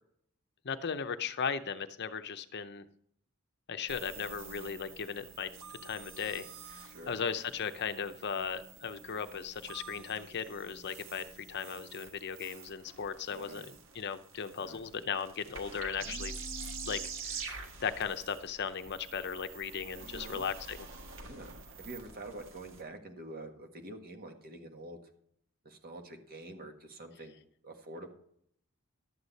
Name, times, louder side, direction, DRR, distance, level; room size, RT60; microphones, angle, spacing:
voice 1, 0.6-2.8 3.7-5.5 5.8-13.7 13.9-16.3 16.8-20.8, left 6 dB, 55° left, 10 dB, 0.7 m, -37 dB
sound 1, 3.9-22.8, right 4 dB, 65° right, 1.6 m, -47 dB
voice 2, 6.9-7.2 13.3-13.7 14.6-14.8 20.0-20.5 21.2-25.0 25.6-28.1, right 2 dB, 45° right, 4 dB, 1.6 m, -47 dB
12.0 x 8.2 x 4.1 m, 0.68 s
head